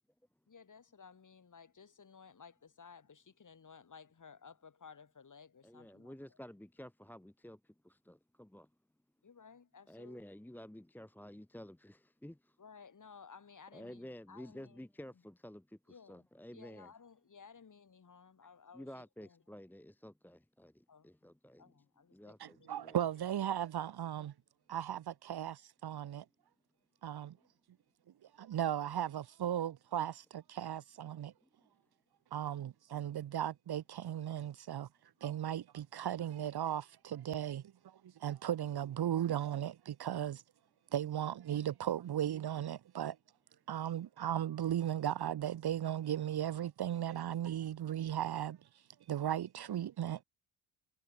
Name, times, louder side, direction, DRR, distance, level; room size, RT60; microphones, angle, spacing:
voice 1, 0.5-6.4 9.2-10.2 12.6-14.8 15.1-15.2 15.9-19.4 20.9-21.3 21.6-23.0, left 6 dB, 40° left, 6.7 m, -57 dB
voice 2, 5.6-7.6 7.8-8.7 9.9-12.5 13.7-15.8 16.1-16.9 18.7-21.6 22.1-23.0, equal, 5° left, 1.3 m, -51 dB
voice 3, 22.4-24.3 24.7-25.5 25.8-26.2 27.0-27.3 28.4-31.3 32.3-34.9 35.2-40.4 40.9-43.2 43.7-48.6 49.1-50.2, right 10 dB, 55° right, 1.5 m, -36 dB
supercardioid pair, 70°, 47 cm